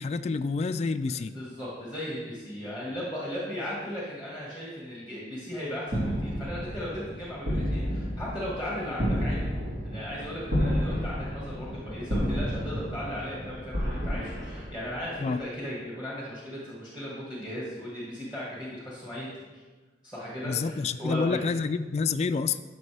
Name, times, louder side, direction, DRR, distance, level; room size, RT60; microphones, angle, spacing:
voice 1, 0.0-1.3 15.2-15.4 20.5-22.6, left 4 dB, 40° left, 9 dB, 0.3 m, -28 dB
voice 2, 1.1-9.5 9.8-19.3 19.5-19.6 20.0-21.6, equal, 5° right, -6 dB, 1.9 m, -37 dB
sound 1, 5.9-15.4, equal, 70° right, 2.5 m, -31 dB
12.5 x 5.9 x 3.4 m, 1.3 s
head